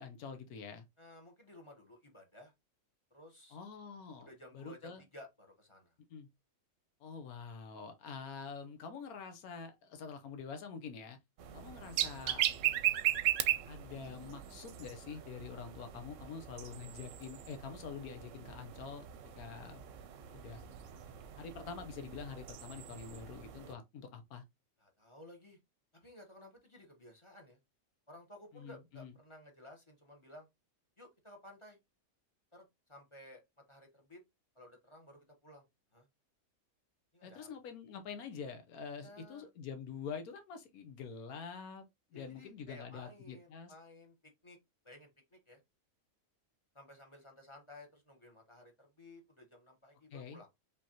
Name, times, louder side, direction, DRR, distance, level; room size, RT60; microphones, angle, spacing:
voice 1, 0.0-0.8 3.5-4.3 4.5-5.0 6.1-6.3 7.0-11.2 11.5-12.4 13.6-19.0 19.4-19.8 20.3-20.6 21.4-24.4 28.5-29.1 37.2-41.8 42.1-43.7 50.1-50.4, left 6 dB, 90° left, 1.3 m, -46 dB
voice 2, 1.0-2.5 3.1-3.6 4.2-5.9 24.8-25.6 25.9-27.6 28.1-30.5 31.0-31.8 32.5-33.4 33.7-34.2 34.5-35.6 35.9-36.1 37.1-37.5 39.0-39.5 42.1-44.6 44.8-45.6 46.7-50.5, left 1 dB, 25° left, 1.0 m, -56 dB
sound 1, 11.4-23.7, right 12 dB, 70° right, 0.9 m, -38 dB
5.3 x 3.4 x 2.8 m
omnidirectional pair, 1.5 m